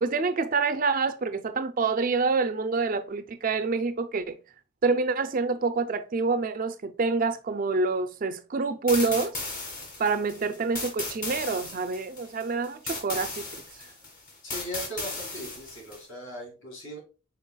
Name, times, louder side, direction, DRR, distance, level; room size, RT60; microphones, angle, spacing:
voice 1, 0.0-4.4 4.8-9.4 10.0-13.5, right 4 dB, 40° right, 0.4 m, -27 dB
sound 1, 8.9-16.0, left 3 dB, 40° left, 1.9 m, -36 dB
voice 2, 14.4-17.0, equal, 60° left, 2.3 m, -39 dB
5.4 x 4.3 x 2.2 m
head